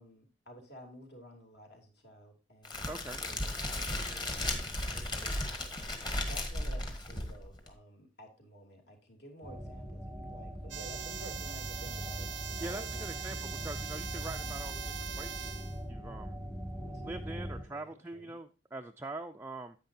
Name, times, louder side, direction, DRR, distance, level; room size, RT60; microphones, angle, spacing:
voice 1, 0.0-13.8 16.8-17.1 17.4-18.3, right 1 dB, 55° left, 2 dB, 2.9 m, -53 dB
Crackle, 2.6-7.7, left 1 dB, 25° left, 1.6 m, -35 dB
voice 2, 2.9-3.2 12.6-14.8 15.2-15.6 15.9-16.4 17.0-19.8, right 2 dB, 10° right, 4 dB, 0.4 m, -43 dB
sound 1, 9.4-17.6, equal, 5° left, 1.0 m, -41 dB
sound 2, 10.7-15.8, right 9 dB, 70° right, 0.7 m, -42 dB
10.0 x 8.7 x 2.7 m, 0.32 s
head